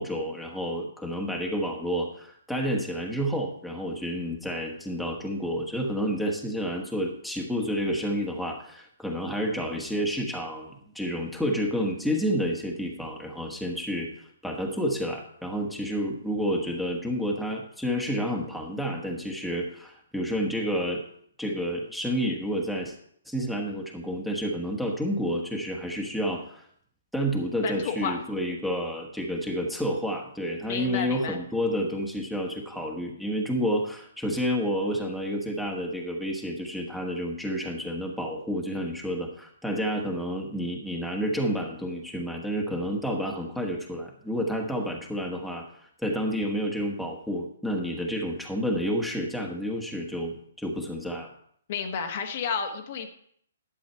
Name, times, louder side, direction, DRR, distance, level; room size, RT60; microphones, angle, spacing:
voice 1, 0.0-14.1 14.4-21.0 21.4-22.9 23.3-26.6 27.1-45.7 46.0-51.3, equal, ahead, 0 dB, 1.4 m, -30 dB
voice 2, 27.6-28.2 30.7-31.4 51.7-53.1, left 6 dB, 45° left, 4 dB, 1.2 m, -31 dB
11.5 x 7.9 x 4.5 m, 0.65 s
figure-of-eight pair, 130°, 0 cm